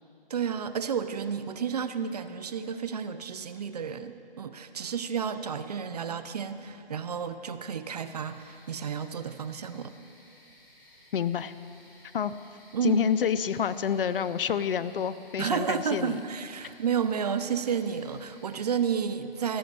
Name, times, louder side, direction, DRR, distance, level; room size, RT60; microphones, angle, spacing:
voice 1, 0.3-9.9 12.7-13.1 15.4-19.6, right 7 dB, 40° right, 11 dB, 0.6 m, -31 dB
sound 1, 8.0-18.8, left 1 dB, 10° left, 1.4 m, -57 dB
voice 2, 11.1-11.5 12.1-12.3 12.8-16.2, left 8 dB, 65° left, 14 dB, 0.6 m, -28 dB
15.0 x 6.3 x 8.5 m, 2.7 s
hypercardioid pair, 160°, 30 cm